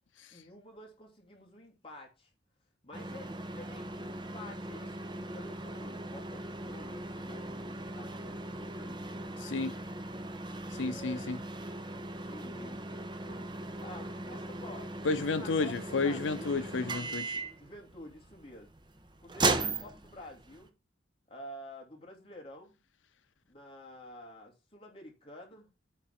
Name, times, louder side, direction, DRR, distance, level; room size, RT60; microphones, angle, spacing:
voice 1, 0.3-2.3 2.8-9.0 10.7-11.3 12.2-13.5 13.8-16.6 17.6-18.7 19.2-20.7 21.3-22.8 23.5-25.7, left 1 dB, 30° left, 2.6 m, -50 dB
sound 1, 2.9-20.7, right 2 dB, 25° right, 0.8 m, -38 dB
voice 2, 9.4-9.7 10.8-11.4 15.0-17.3, left 3 dB, 85° left, 0.6 m, -31 dB
9.1 x 4.0 x 5.6 m
head